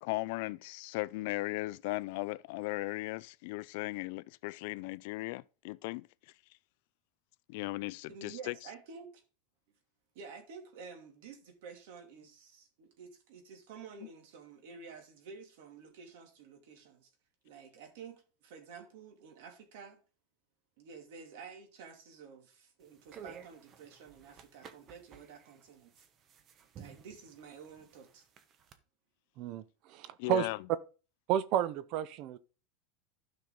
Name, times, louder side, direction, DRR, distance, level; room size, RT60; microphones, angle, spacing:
voice 1, 0.0-6.1 7.5-8.5 30.2-30.6, left 21 dB, 65° left, 0.4 m, -37 dB
voice 2, 8.1-9.2 10.1-17.1 17.4-20.0 20.8-26.0 26.8-28.2, right 5 dB, 70° right, 2.6 m, -51 dB
sound 1, 22.8-28.8, right 7 dB, 30° right, 1.0 m, -54 dB
voice 3, 29.9-30.5 31.3-32.4, right 10 dB, 50° right, 0.5 m, -31 dB
12.0 x 5.8 x 3.8 m
supercardioid pair, 145°, 0 cm